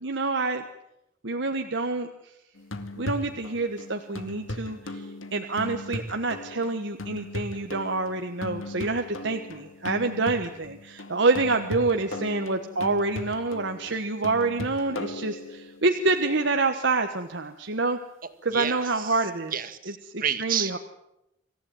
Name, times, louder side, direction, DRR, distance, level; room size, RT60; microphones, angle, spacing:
voice 1, 0.0-0.6 1.2-2.1 3.0-5.0 5.3-18.0 18.4-19.5 20.1-20.8, right 3 dB, 60° right, 5 dB, 1.3 m, -27 dB
sound 1, 2.6-15.9 19.5-19.6, left 1 dB, 80° left, 2.2 m, -38 dB
voice 2, 18.5-19.2 19.5-20.8, right 8 dB, 45° right, 10 dB, 1.8 m, -30 dB
26.0 x 15.5 x 9.3 m, 0.86 s
head